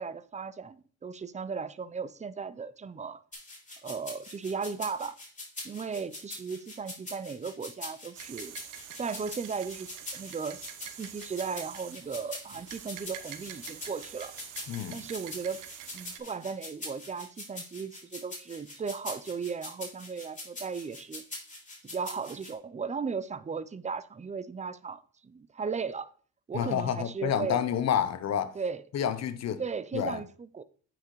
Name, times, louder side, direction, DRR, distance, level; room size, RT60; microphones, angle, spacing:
voice 1, 0.0-3.2 3.8-5.1 5.6-8.5 9.0-14.4 14.9-15.6 15.9-21.2 21.8-26.1 26.5-27.6 28.5-28.8 29.6-30.6, right 5 dB, 25° right, 0.6 m, -36 dB
sound 1, 3.3-22.5, left 2 dB, 25° left, 3.1 m, -43 dB
sound 2, 8.1-16.2, right 10 dB, 90° right, 1.0 m, -46 dB
voice 2, 14.7-15.0 26.5-28.6 28.9-29.6 29.9-30.2, left 9 dB, 60° left, 0.9 m, -29 dB
8.8 x 5.9 x 3.2 m
cardioid pair, 90°, 30 cm